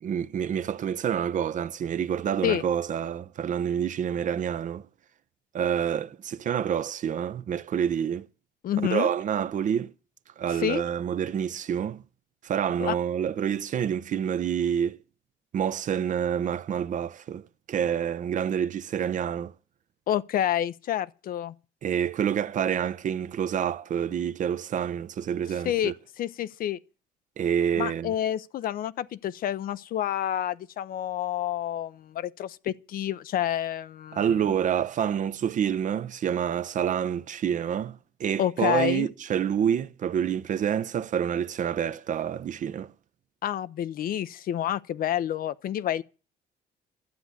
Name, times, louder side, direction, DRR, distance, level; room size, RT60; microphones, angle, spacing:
voice 1, 0.0-4.9 5.5-8.3 8.9-9.9 10.4-12.0 12.4-15.0 15.5-19.5 21.8-25.9 27.4-28.1 34.1-42.9, right 8 dB, 50° right, 0.8 m, -28 dB
voice 2, 8.6-9.1 10.5-10.8 12.8-12.9 20.1-21.5 25.6-26.8 27.8-34.4 38.4-39.1 43.4-46.0, left 11 dB, 60° left, 0.7 m, -29 dB
12.5 x 8.0 x 9.6 m
cardioid pair, 110°, 17 cm